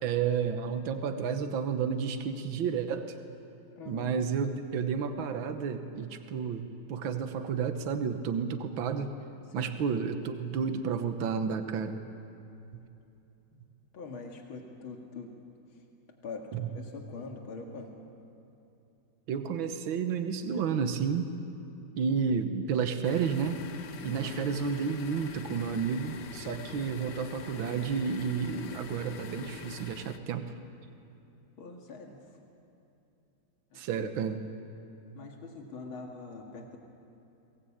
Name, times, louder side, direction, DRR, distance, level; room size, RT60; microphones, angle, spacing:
voice 1, 0.0-3.2 3.9-9.1 9.5-12.0 16.5-16.6 19.3-21.3 22.0-23.6 24.0-30.4 33.8-34.4, right 6 dB, 75° right, 8 dB, 1.9 m, -31 dB
voice 2, 3.8-4.1 9.5-9.7 13.5-13.6 13.9-15.3 15.7-15.8 16.2-17.9 24.1-24.5 31.6-32.2 33.7-34.0 35.1-36.8, left 4 dB, 80° left, 1 dB, 2.8 m, -44 dB
sound 1, 23.0-30.2, left 7 dB, 65° left, 1.4 m, -44 dB
23.0 x 20.0 x 8.6 m, 2.8 s
omnidirectional pair, 2.2 m